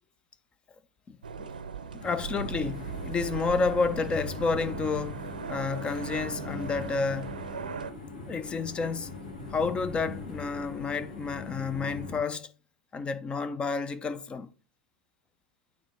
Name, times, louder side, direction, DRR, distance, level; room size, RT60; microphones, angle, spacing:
voice 1, 1.1-1.5 1.9-5.2 5.5-7.4 8.3-9.1 9.5-12.5 12.9-14.5, left 4 dB, 25° left, 0.6 m, -30 dB
sound 1, 1.2-7.9, right 6 dB, 80° right, 0.6 m, -38 dB
sound 2, 2.0-12.2, left 3 dB, 75° left, 2.1 m, -41 dB
8.9 x 3.5 x 4.4 m
figure-of-eight pair, 85°, 4 cm